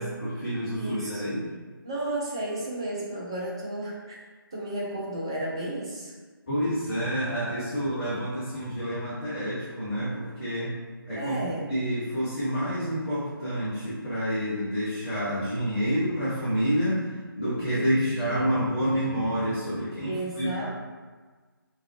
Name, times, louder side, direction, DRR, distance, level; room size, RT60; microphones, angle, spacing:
voice 1, 0.0-1.4 6.5-10.8 11.1-17.0 17.3-20.7, equal, 35° left, -11 dB, 1.1 m, -28 dB
voice 2, 0.8-1.2 1.8-4.3 4.5-6.1 11.2-11.7 17.7-18.5 20.1-20.7, right 1 dB, 15° right, -5 dB, 0.4 m, -33 dB
3.5 x 2.8 x 3.2 m, 1.4 s
figure-of-eight pair, 155°, 12 cm